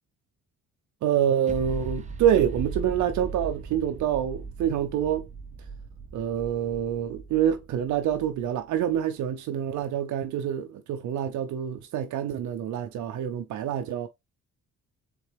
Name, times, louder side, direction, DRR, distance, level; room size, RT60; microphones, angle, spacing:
voice 1, 1.0-5.3 6.1-14.1, right 9 dB, 70° right, 0.6 m, -26 dB
sound 1, 1.5-9.0, right 4 dB, 25° right, 0.7 m, -38 dB
4.1 x 3.8 x 3.3 m
cardioid pair, 90°, 30 cm